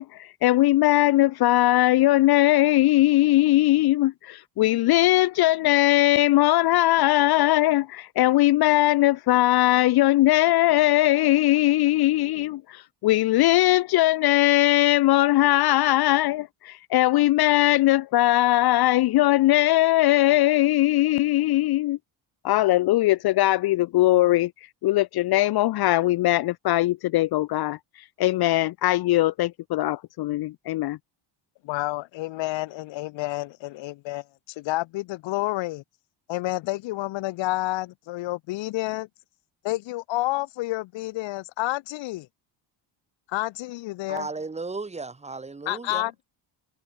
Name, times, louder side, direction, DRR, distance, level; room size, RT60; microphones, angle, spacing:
voice 1, 0.0-22.0 22.4-24.5 24.8-27.8 28.2-31.0, left 16 dB, 55° left, 0.8 m, -20 dB
voice 2, 31.6-35.8 36.3-39.1 39.6-42.3 43.3-44.3 45.7-46.2, left 18 dB, 85° left, 1.4 m, -29 dB
voice 3, 44.1-46.1, right 3 dB, 15° right, 5.6 m, -35 dB
cardioid pair, 175°, 44 cm